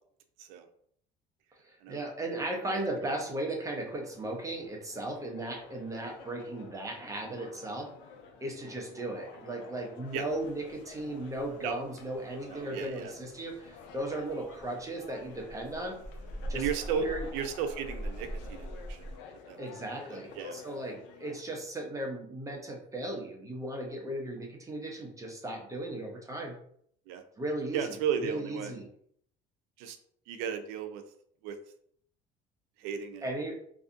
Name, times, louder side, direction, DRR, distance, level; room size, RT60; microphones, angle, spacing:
voice 1, 1.6-7.9 8.4-16.0 16.5-16.6 16.9-17.2 19.6-26.6 27.4-27.9 28.2-28.9 33.2-33.6, right 1 dB, 15° right, 0 dB, 0.7 m, -36 dB
sound 1, 3.7-21.4, left 5 dB, 75° left, 0.5 m, -51 dB
Rain, 10.1-19.2, right 1 dB, 40° left, 0.7 m, -44 dB
voice 2, 12.5-13.1 16.5-19.2 19.5-19.6 20.1-20.6 27.1-27.2 27.7-28.7 29.8-30.0 30.3-31.0 31.4-31.6 32.8-33.3, right 7 dB, 85° right, 8 dB, 0.4 m, -35 dB
2.6 x 2.4 x 2.5 m, 0.64 s
supercardioid pair, 95°, 19 cm